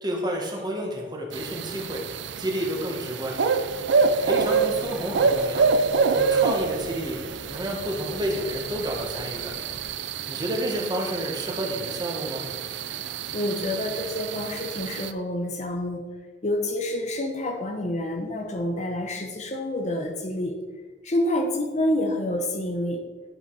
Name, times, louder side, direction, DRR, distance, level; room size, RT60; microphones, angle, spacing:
voice 1, 0.0-2.0 2.4-3.4 4.2-5.7 6.2-7.2 7.5-9.5 10.3-12.4, equal, 25° right, 0 dB, 1.5 m, -30 dB
sound 1, 1.3-15.1, right 5 dB, 75° right, 0.5 m, -27 dB
sound 2, 3.6-9.9, left 1 dB, 65° left, 1.4 m, -44 dB
voice 2, 13.3-16.0 16.4-20.6 21.0-23.0, left 1 dB, 40° left, 4 dB, 0.9 m, -28 dB
10.5 x 5.4 x 4.8 m, 1.3 s
head